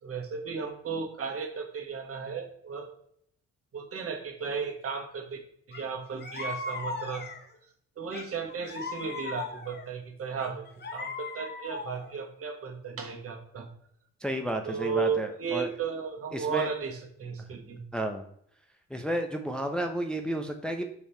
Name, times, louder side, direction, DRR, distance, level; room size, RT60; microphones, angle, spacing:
voice 1, 0.0-2.9 3.7-5.4 5.7-7.2 8.0-10.7 10.9-13.7 14.6-17.8, right 5 dB, 50° right, 4 dB, 1.3 m, -34 dB
sound 1, 5.7-5.9 6.2-7.6 8.1-9.9 10.4-12.2, left 3 dB, 35° left, 1.0 m, -38 dB
voice 2, 14.2-15.7 16.3-16.7 17.9-18.2 18.9-20.9, right 1 dB, 5° left, 4 dB, 0.6 m, -31 dB
5.2 x 4.7 x 4.4 m, 0.67 s
cardioid pair, 90°, 30 cm